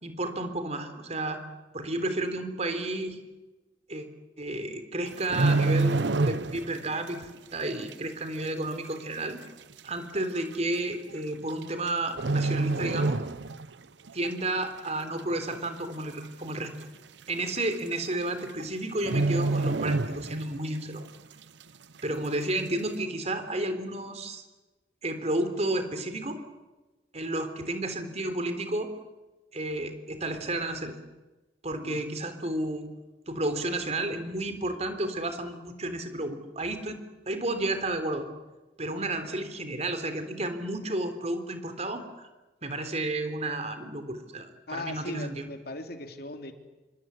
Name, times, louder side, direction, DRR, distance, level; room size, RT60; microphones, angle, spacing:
voice 1, 0.0-1.4 1.7-3.2 3.9-4.1 4.4-6.0 6.2-9.4 9.8-13.2 14.1-16.9 17.3-21.0 22.0-24.4 25.0-26.4 27.1-28.9 29.5-31.0 31.6-32.9 33.3-37.0 37.3-38.3 38.8-42.3 42.6-45.4, right 2 dB, 40° right, 9 dB, 3.6 m, -32 dB
sound 1, 5.1-6.8 7.1-7.4 7.9-8.0 8.9-9.0 9.2-9.3 10.2-10.4 11.5-11.9 12.2-13.7 14.1-14.3 14.8-15.3 15.7-15.8 16.0-16.1 16.5-16.6 17.6-17.7 17.9-18.2 18.5-18.6 19.0-20.7 21.0-21.1, right 3 dB, 80° right, 0.9 m, -27 dB
voice 2, 44.7-46.5, left 2 dB, 60° left, 6 dB, 3.1 m, -38 dB
27.0 x 25.0 x 8.3 m, 1.1 s
head